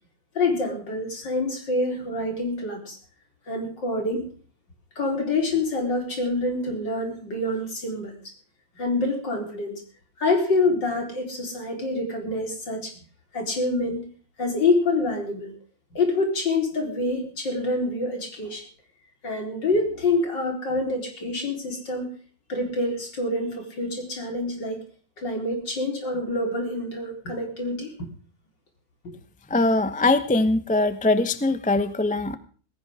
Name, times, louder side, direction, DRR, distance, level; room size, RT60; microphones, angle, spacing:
voice 1, 0.3-3.0 3.5-4.2 5.0-8.1 8.8-9.8 10.2-12.9 13.3-14.0 14.4-15.5 15.9-18.7 19.2-22.1 22.5-24.8 25.2-27.9 29.0-29.1, left 2 dB, 70° left, 2 dB, 4.8 m, -26 dB
voice 2, 29.5-32.4, left 2 dB, 5° left, 11 dB, 0.6 m, -22 dB
18.5 x 16.5 x 3.7 m, 0.41 s
omnidirectional pair, 2.0 m